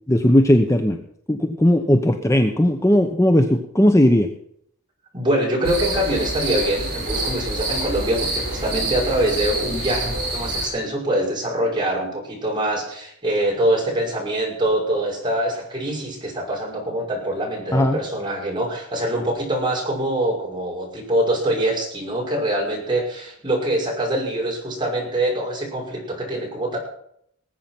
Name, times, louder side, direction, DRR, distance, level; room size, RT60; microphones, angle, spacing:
voice 1, 0.1-1.0 1.3-4.3 17.7-18.0, left 1 dB, 15° left, 5 dB, 0.9 m, -17 dB
voice 2, 5.1-26.8, right 1 dB, 20° right, -2 dB, 5.8 m, -24 dB
sound 1, 5.6-10.7, right 2 dB, 45° right, 7.3 m, -27 dB
20.0 x 8.7 x 6.0 m, 0.69 s
head